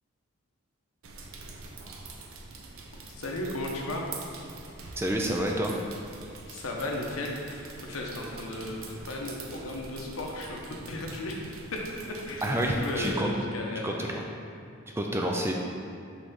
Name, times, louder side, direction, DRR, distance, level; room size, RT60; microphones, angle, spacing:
sound 1, 1.0-13.2, right 3 dB, 75° right, 0.6 m, -45 dB
voice 1, 3.1-4.1 6.5-14.0, left 1 dB, 80° left, -1 dB, 0.9 m, -35 dB
voice 2, 5.0-5.7 12.4-13.3 13.8-14.2 14.9-15.5, right 1 dB, 10° right, 0 dB, 0.4 m, -28 dB
6.0 x 3.4 x 5.5 m, 2.4 s
head